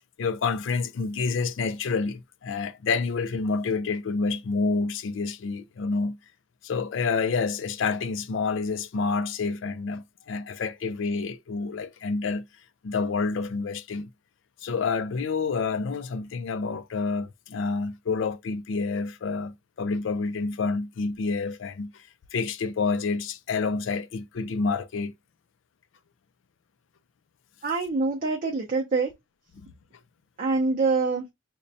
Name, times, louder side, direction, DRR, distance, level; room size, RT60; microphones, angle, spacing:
voice 1, 0.2-6.2 6.6-12.5 12.8-14.1 14.6-22.0 22.3-25.1, left 4 dB, 65° left, 0.4 m, -28 dB
voice 2, 27.6-29.1 30.4-31.3, right 4 dB, 40° right, 0.6 m, -25 dB
5.0 x 2.2 x 2.7 m
head